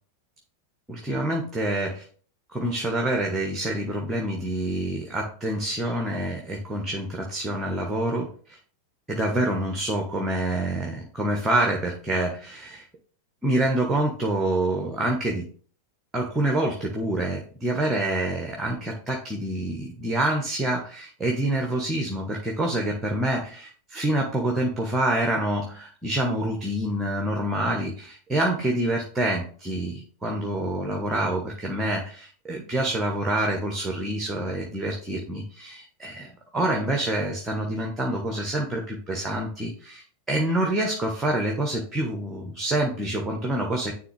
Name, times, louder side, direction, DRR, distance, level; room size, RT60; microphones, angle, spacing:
voice 1, 0.9-2.0 2.5-8.6 9.1-12.8 13.4-15.5 16.1-43.9, right 1 dB, 10° right, 2 dB, 1.1 m, -27 dB
9.6 x 3.4 x 3.2 m, 0.44 s
figure-of-eight pair, 90°, 0 cm